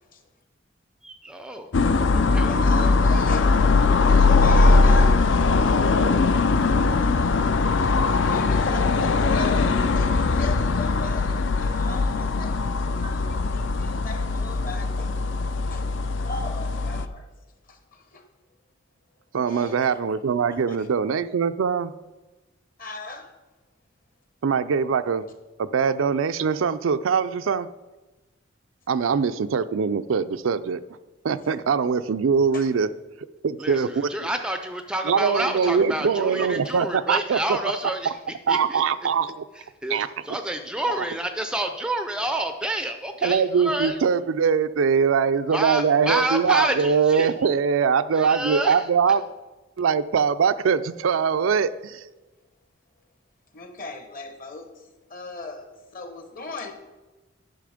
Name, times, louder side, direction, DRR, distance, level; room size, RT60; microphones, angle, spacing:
voice 1, 1.0-1.7 2.1-2.9 33.6-38.2 38.5-38.8 39.6-44.1 45.5-47.3 48.1-48.9, right 1 dB, 5° right, 7 dB, 0.4 m, -29 dB
sound 1, 1.7-17.1, left 3 dB, 65° left, 0.5 m, -20 dB
voice 2, 2.4-3.6 4.0-5.2 6.3-6.4 7.0-7.1 7.8-7.9 8.2-15.1 15.4-15.9 16.2-17.3 17.7-18.2 19.5-19.9 20.4-20.9 22.8-23.3 32.5-32.7 36.6-36.8 53.5-56.7, left 3 dB, 45° left, 6 dB, 1.2 m, -38 dB
voice 3, 19.3-21.9 24.4-25.2 25.6-27.7 28.9-30.8 31.2-32.9 33.4-34.1 35.0-37.4 38.5-39.4 39.9-40.1 41.0-41.1 43.2-49.2 49.8-52.0, right 6 dB, 80° right, 12 dB, 0.4 m, -22 dB
10.5 x 5.8 x 5.0 m, 1.2 s
head